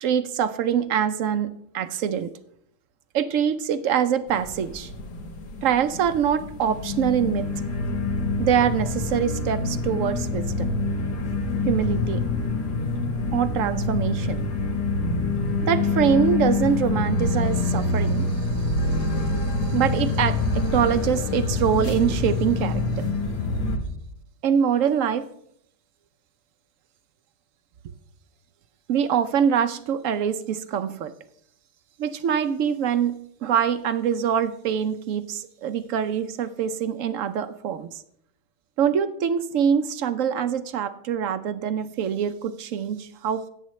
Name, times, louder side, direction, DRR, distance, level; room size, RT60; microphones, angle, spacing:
voice 1, 0.0-2.3 3.1-4.9 5.6-7.5 8.4-10.7 11.7-12.2 13.3-14.4 15.6-18.3 19.0-19.2 19.6-23.1 24.4-25.3 28.9-31.1 32.0-33.1 33.4-38.0 38.8-43.5, right 8 dB, 65° right, 12 dB, 0.8 m, -24 dB
sound 1, 4.3-23.8, left 2 dB, 80° left, 1.9 m, -26 dB
16.5 x 8.2 x 3.1 m, 0.71 s
omnidirectional pair, 1.7 m